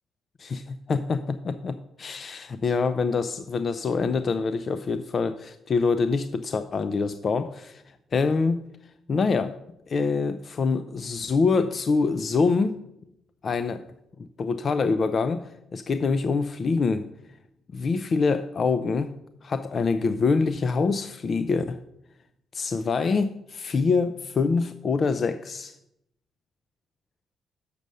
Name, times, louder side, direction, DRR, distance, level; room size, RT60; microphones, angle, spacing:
voice 1, 0.4-1.2 1.5-8.6 9.1-9.6 9.9-12.8 13.4-13.9 14.4-17.1 17.7-19.1 19.4-21.8 22.5-25.8, left 4 dB, 45° left, 11 dB, 0.4 m, -25 dB
6.7 x 5.3 x 6.3 m, 0.81 s
cardioid pair, 90°, 0 cm